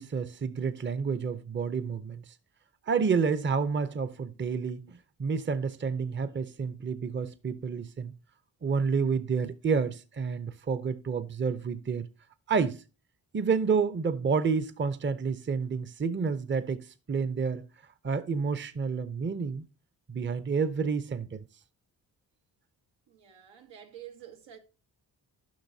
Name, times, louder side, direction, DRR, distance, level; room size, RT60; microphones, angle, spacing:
voice 1, 0.0-2.2 2.9-8.1 8.6-12.1 12.5-12.8 13.3-17.6 18.0-19.7 20.1-21.4, right 5 dB, 25° right, 0.6 m, -29 dB
voice 2, 23.1-24.6, right 10 dB, 85° right, 1.1 m, -48 dB
10.5 x 5.8 x 2.7 m
cardioid pair, 60°, 43 cm